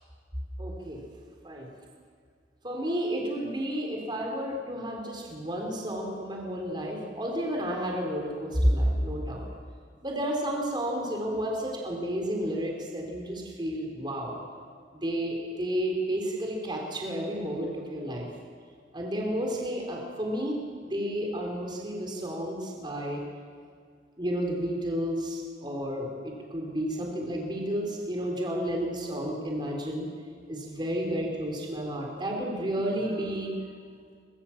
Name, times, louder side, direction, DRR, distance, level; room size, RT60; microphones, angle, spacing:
voice 1, 0.6-1.0 1.4-1.7 2.6-9.4 10.0-14.4 14.9-18.3 18.9-23.2 24.2-30.1 30.5-33.6, equal, 25° right, 0 dB, 3.9 m, -31 dB
23.5 x 21.5 x 7.3 m, 2.1 s
head